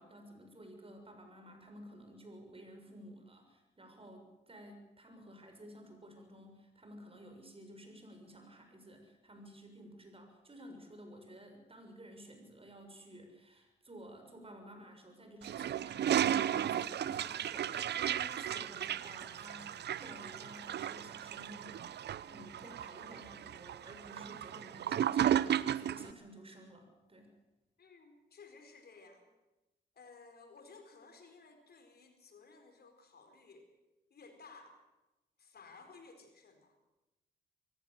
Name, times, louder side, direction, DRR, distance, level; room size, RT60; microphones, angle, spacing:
voice 1, 0.0-27.3, right 1 dB, 30° right, 5 dB, 6.5 m, -53 dB
Toilet flush, 15.4-26.1, right 10 dB, 65° right, 0.7 m, -34 dB
voice 2, 27.8-29.3 29.9-33.7 34.1-34.8 35.4-36.8, left 4 dB, 60° left, 6 dB, 4.6 m, -57 dB
22.5 x 17.0 x 7.7 m, 1.0 s
supercardioid pair, 55°, 19 cm